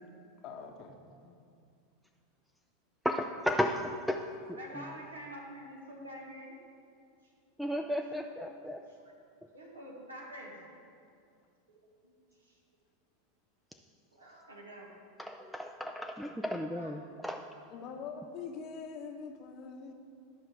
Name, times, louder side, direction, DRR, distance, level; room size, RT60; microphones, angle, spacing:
voice 1, 0.4-1.0 1.2-1.4 17.6-19.9, left 5 dB, 45° left, 5 dB, 0.9 m, -44 dB
voice 2, 3.0-4.9 7.6-8.8 15.2-17.5, equal, ahead, 4 dB, 0.4 m, -34 dB
voice 3, 4.6-6.5 8.4-9.2 9.5-10.6 11.7-12.1 12.4-12.6 14.1-14.9 16.7-16.9, equal, 85° right, -2 dB, 1.7 m, -47 dB
11.5 x 5.7 x 4.6 m, 2.4 s
figure-of-eight pair, 85°, 0 cm